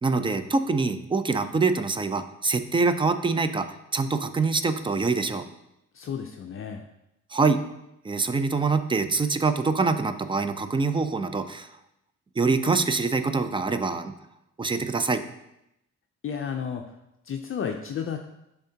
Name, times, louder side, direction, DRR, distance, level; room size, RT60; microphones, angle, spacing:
voice 1, 0.0-5.4 7.3-7.6 8.0-11.7 12.4-14.1 14.6-15.2, right 4 dB, 15° right, 10 dB, 0.4 m, -25 dB
voice 2, 5.9-6.8 16.2-16.9 17.2-18.2, left 7 dB, 45° left, 4 dB, 0.5 m, -32 dB
10.0 x 3.5 x 2.8 m, 0.85 s
cardioid pair, 90°, 30 cm